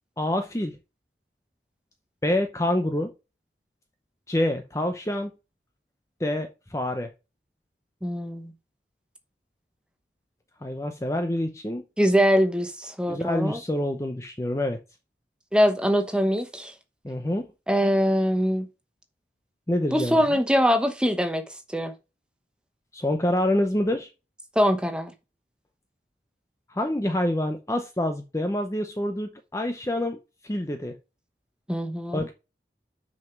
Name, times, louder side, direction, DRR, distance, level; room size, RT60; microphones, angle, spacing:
voice 1, 0.2-0.7 2.2-3.1 4.3-5.3 6.2-7.1 10.6-11.8 13.1-14.8 17.0-17.5 19.7-20.2 22.9-24.1 26.7-30.2 30.4-30.9 32.1-32.3, left 1 dB, 15° left, 0.7 m, -26 dB
voice 2, 8.0-8.5 12.0-13.6 15.5-16.7 17.7-18.7 19.9-21.4 21.7-21.9 24.5-25.1 31.7-32.3, equal, 5° right, 0.9 m, -23 dB
6.4 x 5.1 x 5.9 m
head